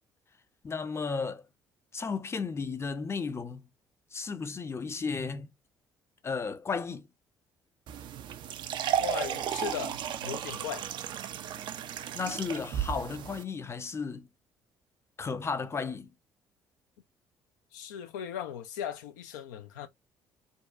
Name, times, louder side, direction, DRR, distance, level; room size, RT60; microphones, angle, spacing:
voice 1, 0.6-1.4 1.9-3.6 4.1-5.5 6.2-7.1 12.1-14.3 15.2-16.1, left 5 dB, 25° left, 0.5 m, -34 dB
sound 1, 7.9-13.4, right 10 dB, 55° right, 0.3 m, -34 dB
voice 2, 9.0-10.9 17.7-19.9, left 9 dB, 80° left, 0.4 m, -38 dB
2.6 x 2.2 x 2.3 m
hypercardioid pair, 50°, 10 cm